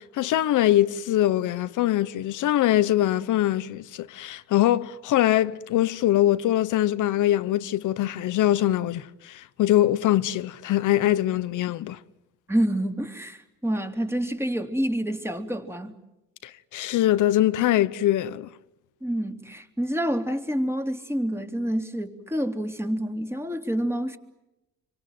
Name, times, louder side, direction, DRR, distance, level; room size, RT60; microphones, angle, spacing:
voice 1, 0.0-12.0 16.4-18.5, left 13 dB, 80° left, 1.0 m, -23 dB
voice 2, 12.5-15.9 19.0-24.2, equal, 10° right, 3.4 m, -28 dB
27.5 x 25.0 x 7.8 m
cardioid pair, 90°, 30 cm